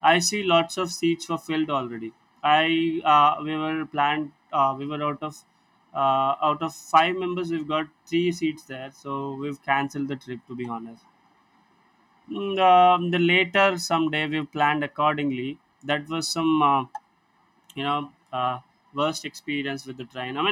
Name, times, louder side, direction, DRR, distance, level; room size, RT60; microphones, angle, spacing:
voice 1, 0.0-2.1 2.4-5.4 5.9-11.0 12.3-15.6 15.8-16.9 17.8-18.6 18.9-20.5, equal, ahead, 7.1 m, -24 dB
open air
wide cardioid pair, 60°, 15 cm